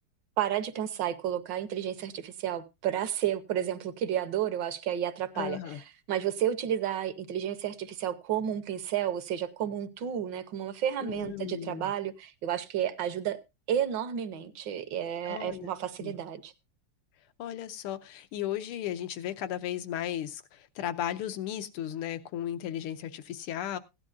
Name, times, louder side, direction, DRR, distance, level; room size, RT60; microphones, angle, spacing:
voice 1, 0.4-13.4 13.7-16.5, right 10 dB, 65° right, 1.4 m, -31 dB
voice 2, 5.4-5.8 11.0-11.9 15.2-15.7 16.0-16.1 17.4-23.8, left 11 dB, 85° left, 1.7 m, -35 dB
16.5 x 11.0 x 2.5 m
omnidirectional pair, 2.4 m